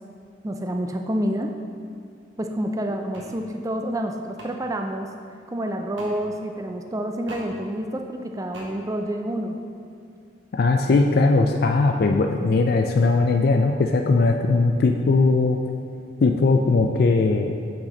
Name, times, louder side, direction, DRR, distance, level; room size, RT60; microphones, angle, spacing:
voice 1, 0.4-1.5 2.4-5.1 5.5-9.6 12.4-12.5, right 1 dB, 15° right, 4 dB, 0.4 m, -28 dB
sound 1, 3.1-3.3 4.4-4.5 6.0-6.1 7.3-7.5 8.5-8.7, right 1 dB, 75° right, 1.2 m, -40 dB
voice 2, 10.5-15.6 16.2-17.6, left 3 dB, 55° left, 4 dB, 0.4 m, -19 dB
8.8 x 5.8 x 3.9 m, 2.3 s
head